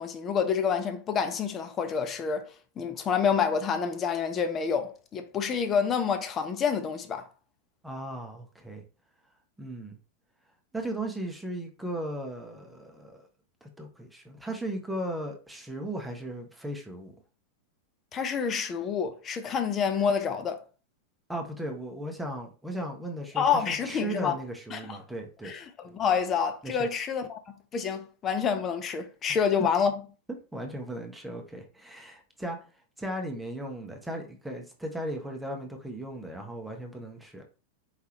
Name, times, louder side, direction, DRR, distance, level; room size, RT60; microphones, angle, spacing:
voice 1, 0.0-2.5 2.8-7.3 18.1-20.6 23.3-24.4 24.7-24.8 25.4-25.6 25.9-27.4 27.7-29.9, left 6 dB, 25° left, 0.8 m, -28 dB
voice 2, 7.8-8.8 9.6-10.0 10.7-13.2 13.6-17.2 21.3-25.5 26.6-26.9 30.5-32.6 33.0-37.4, right 1 dB, 5° right, 1.1 m, -36 dB
5.0 x 3.5 x 3.0 m
figure-of-eight pair, 90°, 0 cm